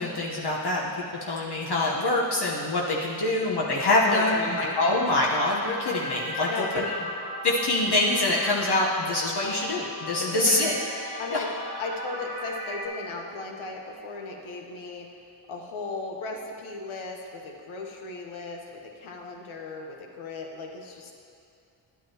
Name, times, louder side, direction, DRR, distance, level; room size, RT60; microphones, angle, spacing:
voice 1, 0.0-6.5 6.7-6.8 7.4-10.7 11.3-11.4, left 2 dB, 55° left, -4 dB, 1.1 m, -25 dB
sound 1, 3.8-12.9, left 1 dB, 25° left, 1.9 m, -36 dB
voice 2, 4.0-4.8 6.5-6.9 10.2-10.8 11.2-11.5 11.8-15.1 15.5-21.1, left 3 dB, 80° left, 1 dB, 1.1 m, -36 dB
11.0 x 8.5 x 2.9 m, 2.5 s
supercardioid pair, 40°, 48 cm